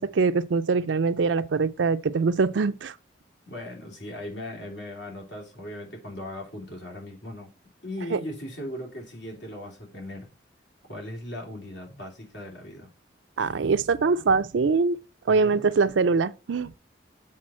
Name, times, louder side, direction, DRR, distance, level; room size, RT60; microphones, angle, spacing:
voice 1, 0.0-2.9 8.1-8.2 13.4-15.0 15.3-16.7, right 4 dB, 80° right, 0.5 m, -23 dB
voice 2, 3.5-7.5 7.8-10.3 10.9-12.9 15.3-15.6, left 1 dB, 75° left, 3.0 m, -38 dB
7.6 x 4.4 x 4.3 m
head